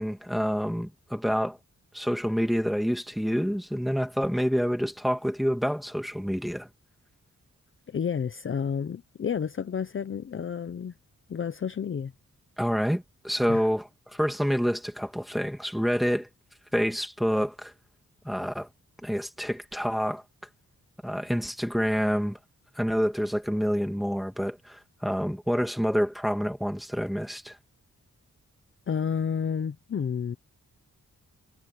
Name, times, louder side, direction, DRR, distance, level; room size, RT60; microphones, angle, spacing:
voice 1, 0.0-1.6 1.9-6.7 12.6-16.3 16.7-17.7 18.2-18.7 19.0-20.2 21.0-22.4 22.8-27.6, equal, ahead, 2.2 m, -27 dB
voice 2, 7.9-10.9 11.3-12.1 13.5-13.6 28.9-30.4, left 7 dB, 40° left, 0.6 m, -30 dB
wide cardioid pair, 155°, 31 cm